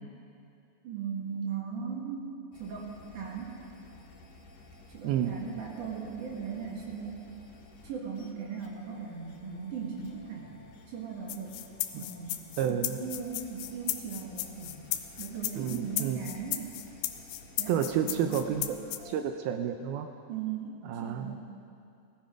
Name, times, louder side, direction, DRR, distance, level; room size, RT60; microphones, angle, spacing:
voice 1, 0.8-3.6 4.9-7.3 7.8-10.5 10.9-11.6 11.9-14.8 15.2-16.8 17.6-18.6 20.3-21.4, right 6 dB, 55° right, -2 dB, 2.9 m, -38 dB
sound 1, 2.5-19.2, left 1 dB, 55° left, 2.9 m, -54 dB
voice 2, 5.0-5.4 11.9-12.0 12.6-13.0 15.6-16.2 17.7-18.8 19.1-20.1 20.8-21.3, right 9 dB, 80° right, 6 dB, 2.3 m, -30 dB
sound 2, 11.3-19.0, left 14 dB, 90° left, 2.7 m, -34 dB
17.5 x 14.5 x 5.1 m, 2.5 s
omnidirectional pair, 4.8 m